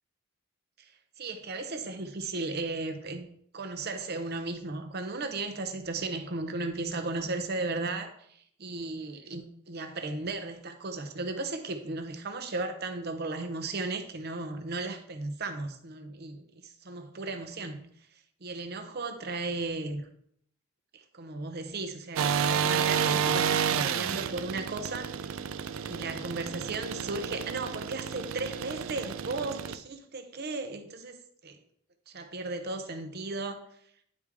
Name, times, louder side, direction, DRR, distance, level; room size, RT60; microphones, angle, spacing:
voice 1, 1.2-3.3 3.5-17.8 18.4-20.0 20.9-25.2 25.9-31.6 32.1-33.6, right 3 dB, 50° right, 0.8 m, -35 dB
sound 1, 22.2-29.8, right 7 dB, 85° right, 0.4 m, -30 dB
9.6 x 4.8 x 3.6 m
head